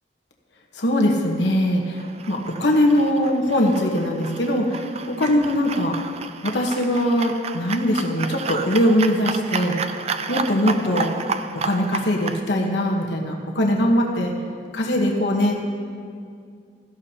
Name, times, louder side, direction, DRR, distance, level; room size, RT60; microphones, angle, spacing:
voice 1, 0.7-2.0 2.3-5.9 6.4-9.8 10.3-11.1 11.6-14.3 14.7-15.7, left 1 dB, 85° left, 0 dB, 1.2 m, -21 dB
sound 1, 1.9-12.4, right 5 dB, 35° right, 0.5 m, -31 dB
17.0 x 14.0 x 2.9 m, 2.3 s
head